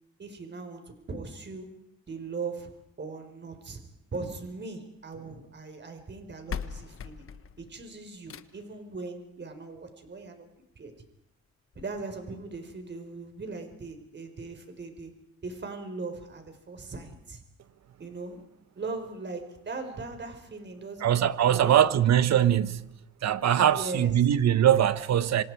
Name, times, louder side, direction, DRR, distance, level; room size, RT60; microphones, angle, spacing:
voice 1, 0.2-1.7 2.1-2.7 3.0-3.8 4.1-7.3 7.6-10.5 10.8-10.9 11.7-15.1 15.4-17.4 18.0-18.4 18.7-22.0 23.7-24.1, right 3 dB, 40° right, 4.5 m, -39 dB
sound 1, 4.1-5.3 6.1-6.2 6.5-8.8 10.1-10.2 10.7-10.8 11.1-11.2 11.7-11.8, left 7 dB, 45° left, 1.2 m, -41 dB
voice 2, 21.0-22.8 23.2-25.4, right 10 dB, 65° right, 1.3 m, -22 dB
26.5 x 26.5 x 4.8 m
cardioid pair, 105°, 29 cm